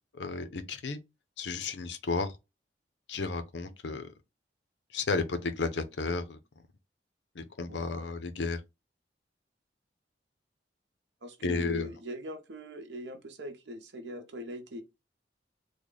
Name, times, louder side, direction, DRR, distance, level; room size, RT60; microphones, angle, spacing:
voice 1, 0.2-1.0 1.4-2.3 3.1-4.0 4.9-6.4 7.4-8.6 11.4-11.9, left 4 dB, 85° left, 0.6 m, -32 dB
voice 2, 7.6-8.0 11.2-14.8, equal, 85° right, 0.8 m, -41 dB
3.3 x 2.1 x 3.8 m
head